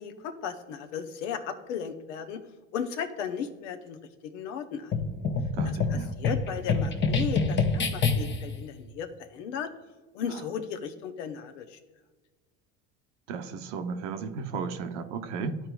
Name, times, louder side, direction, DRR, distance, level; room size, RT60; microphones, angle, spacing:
voice 1, 0.0-2.4 2.7-4.9 5.6-9.7 10.1-11.8, left 7 dB, 85° left, 8 dB, 0.8 m, -36 dB
sound 1, 4.9-8.6, left 4 dB, 30° left, 0.9 m, -27 dB
voice 2, 5.5-6.1 13.3-15.6, right 5 dB, 75° right, 6 dB, 0.8 m, -34 dB
12.0 x 4.5 x 2.3 m, 1.3 s
hypercardioid pair, 85°, 36 cm